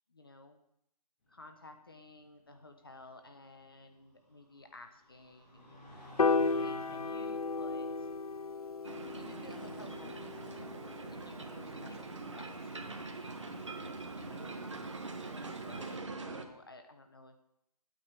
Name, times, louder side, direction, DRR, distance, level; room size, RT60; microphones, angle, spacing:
voice 1, 0.1-0.6 1.3-8.1 9.1-10.7 11.1-13.7 14.1-17.4, left 2 dB, 35° left, 6 dB, 0.9 m, -55 dB
sound 1, 1.2-11.8, left 1 dB, 20° left, 5.2 m, -57 dB
Piano, 6.2-12.5, left 4 dB, 60° left, 0.5 m, -35 dB
sound 2, 8.8-16.5, right 3 dB, 45° right, 1.4 m, -43 dB
22.0 x 8.9 x 3.4 m, 0.77 s
figure-of-eight pair, 175°, 21 cm